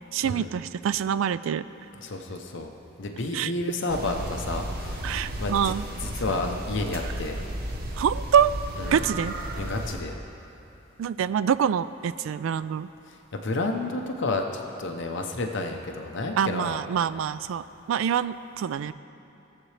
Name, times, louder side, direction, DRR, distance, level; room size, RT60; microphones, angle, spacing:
voice 1, 0.1-1.7 3.3-3.5 5.0-5.8 8.0-8.5 8.9-9.3 11.0-12.9 16.4-18.9, right 8 dB, 85° right, 16 dB, 0.3 m, -25 dB
voice 2, 1.9-2.7 3.0-5.1 5.4-5.7 6.0-7.4 8.8-9.0 9.6-10.2 13.1-16.8, left 2 dB, 65° left, 3 dB, 0.7 m, -31 dB
sound 1, 3.9-9.9, right 1 dB, 50° right, 1.0 m, -34 dB
19.0 x 7.4 x 3.3 m, 2.8 s
head